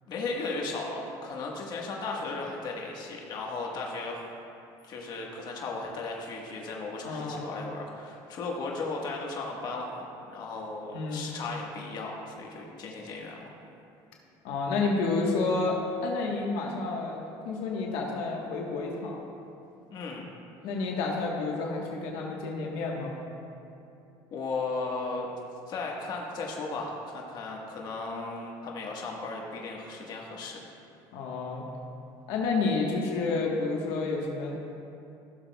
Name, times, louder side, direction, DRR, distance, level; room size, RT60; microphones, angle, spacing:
voice 1, 0.1-4.2 4.8-13.4 19.9-20.3 24.3-25.3 25.7-30.6, left 3 dB, 50° left, -1 dB, 1.4 m, -36 dB
voice 2, 7.0-7.5 10.9-11.3 14.4-17.2 17.4-19.2 20.6-23.1 31.1-31.7 32.3-34.6, left 3 dB, 80° left, -1 dB, 1.3 m, -30 dB
16.0 x 6.9 x 2.3 m, 2.7 s
cardioid pair, 120°, 9 cm